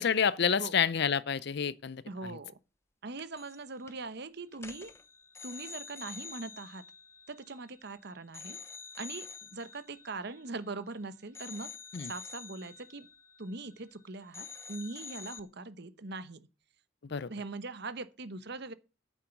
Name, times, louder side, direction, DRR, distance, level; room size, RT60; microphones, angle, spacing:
voice 1, 0.0-2.4 11.9-12.1 17.1-17.3, left 7 dB, 55° left, 0.5 m, -29 dB
voice 2, 2.0-2.6 3.0-4.9 5.4-6.8 7.3-8.6 9.0-11.7 12.0-13.1 13.4-16.5 17.3-18.7, right 3 dB, 55° right, 0.9 m, -41 dB
sound 1, 3.2-3.6 3.9-4.1 4.5-7.9 8.3-10.9 11.3-14.0 14.3-15.4, left 6 dB, 15° left, 0.7 m, -48 dB
9.3 x 7.3 x 7.1 m
head